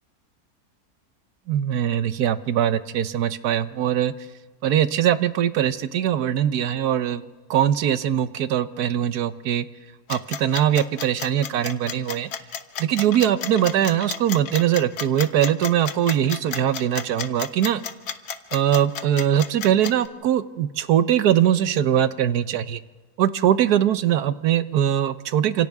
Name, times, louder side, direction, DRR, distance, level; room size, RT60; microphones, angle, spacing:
voice 1, 1.5-4.1 4.6-7.2 7.5-9.6 10.1-12.3 12.8-17.8 18.5-22.8 23.2-25.7, right 10 dB, 85° right, 13 dB, 1.4 m, -21 dB
sound 1, 10.1-20.1, left 8 dB, 80° left, 1.5 m, -31 dB
29.5 x 27.5 x 3.6 m, 1.2 s
omnidirectional pair, 1.6 m